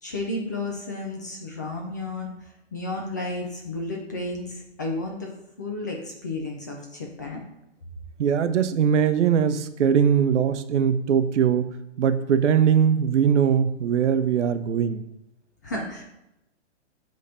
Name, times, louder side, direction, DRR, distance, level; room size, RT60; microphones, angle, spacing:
voice 1, 0.0-2.3 2.7-5.3 5.6-7.4 15.6-16.0, left 2 dB, 15° left, 0 dB, 0.4 m, -32 dB
voice 2, 8.2-15.0, right 8 dB, 75° right, 10 dB, 0.7 m, -21 dB
7.4 x 3.6 x 4.2 m, 0.89 s
hypercardioid pair, 155°, 35 cm